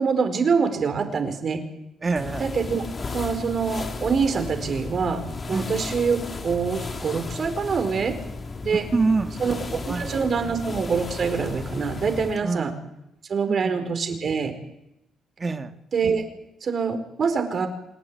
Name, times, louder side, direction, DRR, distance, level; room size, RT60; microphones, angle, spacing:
voice 1, 0.0-1.6 2.4-2.8 3.1-8.2 8.6-8.8 9.4-9.5 9.8-12.7 13.3-14.5 15.9-16.2 16.6-17.7, right 5 dB, 50° right, 7 dB, 4.6 m, -25 dB
voice 2, 2.0-2.4 5.5-5.7 8.9-10.5 12.4-12.7 13.5-13.8 15.4-15.7, right 3 dB, 30° right, 6 dB, 2.0 m, -27 dB
sound 1, 2.2-12.5, left 3 dB, 35° left, 2.1 m, -34 dB
28.0 x 11.5 x 9.8 m, 0.87 s
cardioid pair, 90°, 0 cm